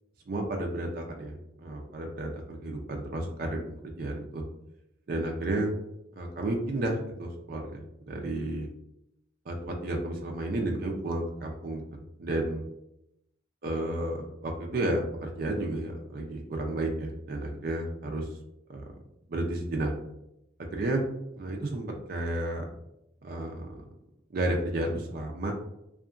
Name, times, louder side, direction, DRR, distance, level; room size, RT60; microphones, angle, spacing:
voice 1, 0.3-4.4 5.1-5.7 6.2-7.8 8.1-8.7 9.5-12.6 13.6-18.2 18.7-18.8 19.3-19.9 20.7-21.1 21.4-22.6 23.2-23.7 24.3-25.5, right 1 dB, 50° right, 1 dB, 0.4 m, -32 dB
2.8 x 2.4 x 2.4 m, 0.82 s
head